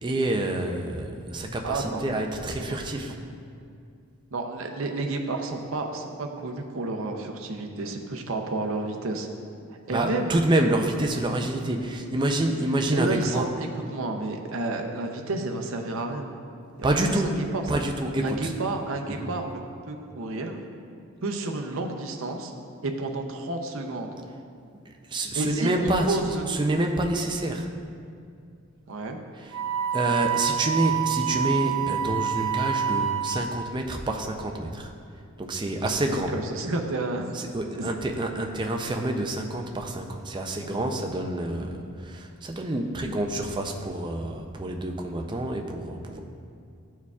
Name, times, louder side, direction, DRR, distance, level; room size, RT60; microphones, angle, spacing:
voice 1, 0.0-3.2 9.9-13.5 16.8-17.3 17.7-18.5 19.1-19.3 24.9-26.2 26.5-27.7 29.4-29.5 29.9-34.9 35.4-36.3 37.3-46.2, right 1 dB, 20° right, 3 dB, 0.4 m, -27 dB
voice 2, 1.6-2.0 2.7-2.8 4.3-9.3 9.7-10.3 12.9-16.3 16.8-17.7 18.2-19.6 19.9-20.6 21.2-22.5 22.8-24.1 25.3-26.4 28.9-29.2 35.8-37.3, right 2 dB, 65° right, 3 dB, 0.6 m, -31 dB
Wind instrument woodwind instrument, 29.5-33.7, right 8 dB, 85° right, 0.9 m, -27 dB
12.0 x 4.5 x 2.4 m, 2.4 s
head